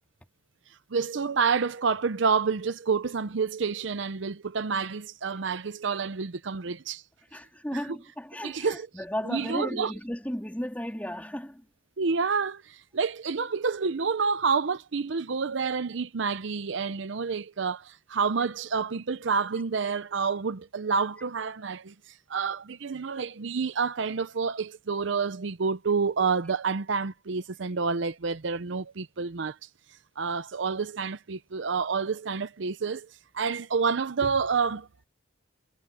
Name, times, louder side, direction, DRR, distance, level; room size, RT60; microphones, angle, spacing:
voice 1, 0.9-7.0 8.4-8.9 9.3-9.9 12.0-21.9 22.3-29.6 30.2-33.1 33.3-34.9, right 5 dB, 65° right, 0.6 m, -28 dB
voice 2, 7.3-11.6, equal, 10° left, 3.0 m, -34 dB
head